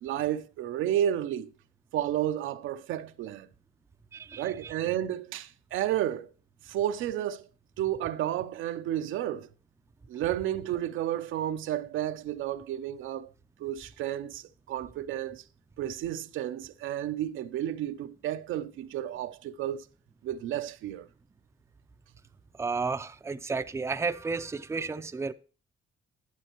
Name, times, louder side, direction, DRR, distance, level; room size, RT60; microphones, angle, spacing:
voice 1, 0.0-1.5 1.9-3.5 4.4-6.3 6.7-7.4 7.8-9.5 10.1-13.3 13.6-15.4 15.8-19.9 20.2-21.1, right 11 dB, 80° right, 0.6 m, -32 dB
voice 2, 4.1-4.7 22.6-25.3, right 4 dB, 15° right, 0.5 m, -32 dB
11.5 x 9.0 x 3.0 m
cardioid pair, 90°, 20 cm